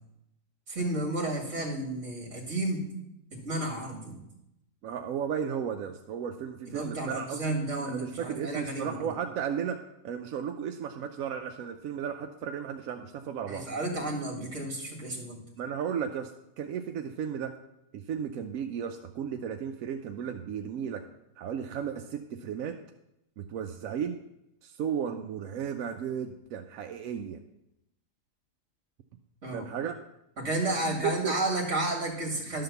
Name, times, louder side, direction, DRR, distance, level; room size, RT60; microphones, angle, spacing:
voice 1, 0.7-2.9 3.3-4.2 6.7-9.0 13.5-15.4 29.4-29.7 30.4-32.6, right 2 dB, 50° right, 0 dB, 2.2 m, -32 dB
voice 2, 4.8-7.4 7.9-13.7 15.6-16.3 16.6-17.5 17.9-21.0 21.4-22.8 23.4-24.2 24.6-27.4 29.5-30.0 31.0-31.4, right 8 dB, 70° right, 5 dB, 0.9 m, -34 dB
11.5 x 3.8 x 6.8 m, 0.85 s
omnidirectional pair, 1.8 m